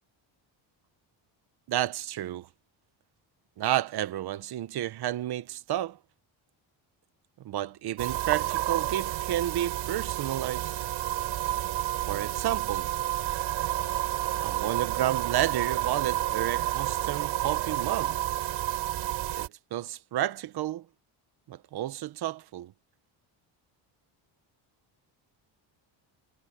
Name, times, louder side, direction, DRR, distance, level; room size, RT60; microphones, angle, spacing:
voice 1, 1.7-2.5 3.6-6.0 7.4-10.8 12.1-12.9 14.4-18.2 19.3-20.8 21.5-22.7, right 13 dB, 55° right, 1.1 m, -31 dB
sound 1, 8.0-19.5, right 15 dB, 80° right, 4.6 m, -30 dB
cardioid pair, 165°, 46 cm